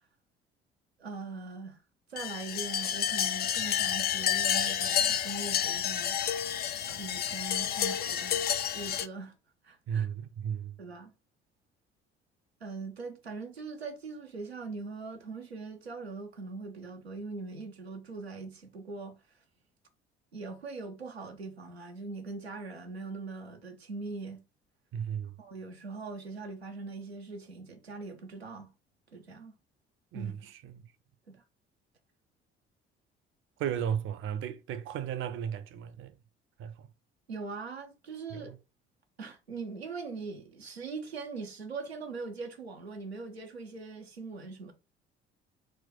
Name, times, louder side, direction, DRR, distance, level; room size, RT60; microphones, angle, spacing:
voice 1, 1.0-1.8 2.1-6.2 6.9-8.5 8.7-9.3 9.6-10.1 10.8-11.1 12.6-19.1 20.3-24.4 25.4-28.7 29.1-29.5 30.1-30.3 31.3-31.4 37.3-38.6 39.2-44.7, right 3 dB, 90° right, 0.5 m, -41 dB
sound 1, 2.2-9.1, left 9 dB, 35° left, 0.4 m, -30 dB
voice 2, 9.9-10.7 24.9-25.3 30.1-30.8 33.6-36.1 36.6-36.9 38.3-38.5, right 8 dB, 40° right, 0.6 m, -35 dB
4.2 x 2.1 x 4.2 m
figure-of-eight pair, 50°, 30 cm